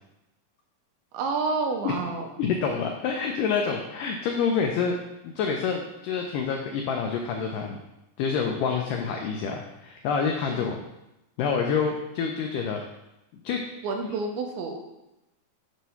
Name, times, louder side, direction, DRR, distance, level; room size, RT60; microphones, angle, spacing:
voice 1, 1.1-2.3 10.5-10.8 13.8-15.0, right 4 dB, 85° right, 3 dB, 2.6 m, -29 dB
voice 2, 2.4-5.0 5.2-7.8 8.2-10.8 11.4-12.8 13.4-13.6 14.0-14.1, left 6 dB, 90° left, 2 dB, 1.8 m, -27 dB
7.7 x 3.1 x 5.6 m, 0.93 s
omnidirectional pair, 4.4 m